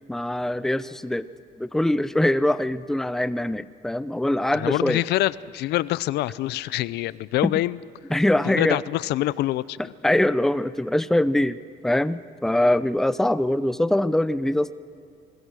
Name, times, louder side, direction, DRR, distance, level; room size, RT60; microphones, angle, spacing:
voice 1, 0.1-1.3 1.6-5.0 7.4-7.5 8.1-8.8 10.0-14.7, left 1 dB, ahead, 14 dB, 0.6 m, -23 dB
voice 2, 4.5-7.8 8.4-9.9, left 16 dB, 80° left, 19 dB, 0.6 m, -25 dB
29.0 x 22.0 x 6.4 m, 2.5 s
cardioid pair, 110°, 17 cm